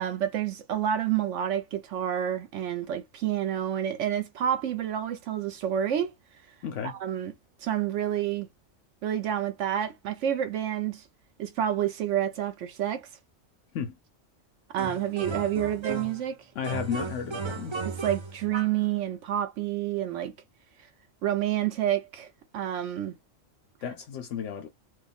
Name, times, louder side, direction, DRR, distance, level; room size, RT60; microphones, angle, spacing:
voice 1, 0.0-6.1 6.8-7.3 7.6-8.5 9.0-11.0 11.4-13.1 14.7-16.4 17.8-20.3 21.2-22.3 22.5-23.1, right 10 dB, 75° right, 0.9 m, -29 dB
voice 2, 6.6-7.0 13.7-13.9 16.6-17.8 23.8-24.7, left 7 dB, 75° left, 0.9 m, -33 dB
sound 1, 14.8-16.3 16.6-18.9, right 4 dB, 45° right, 0.4 m, -35 dB
4.6 x 2.2 x 3.4 m
omnidirectional pair, 1.3 m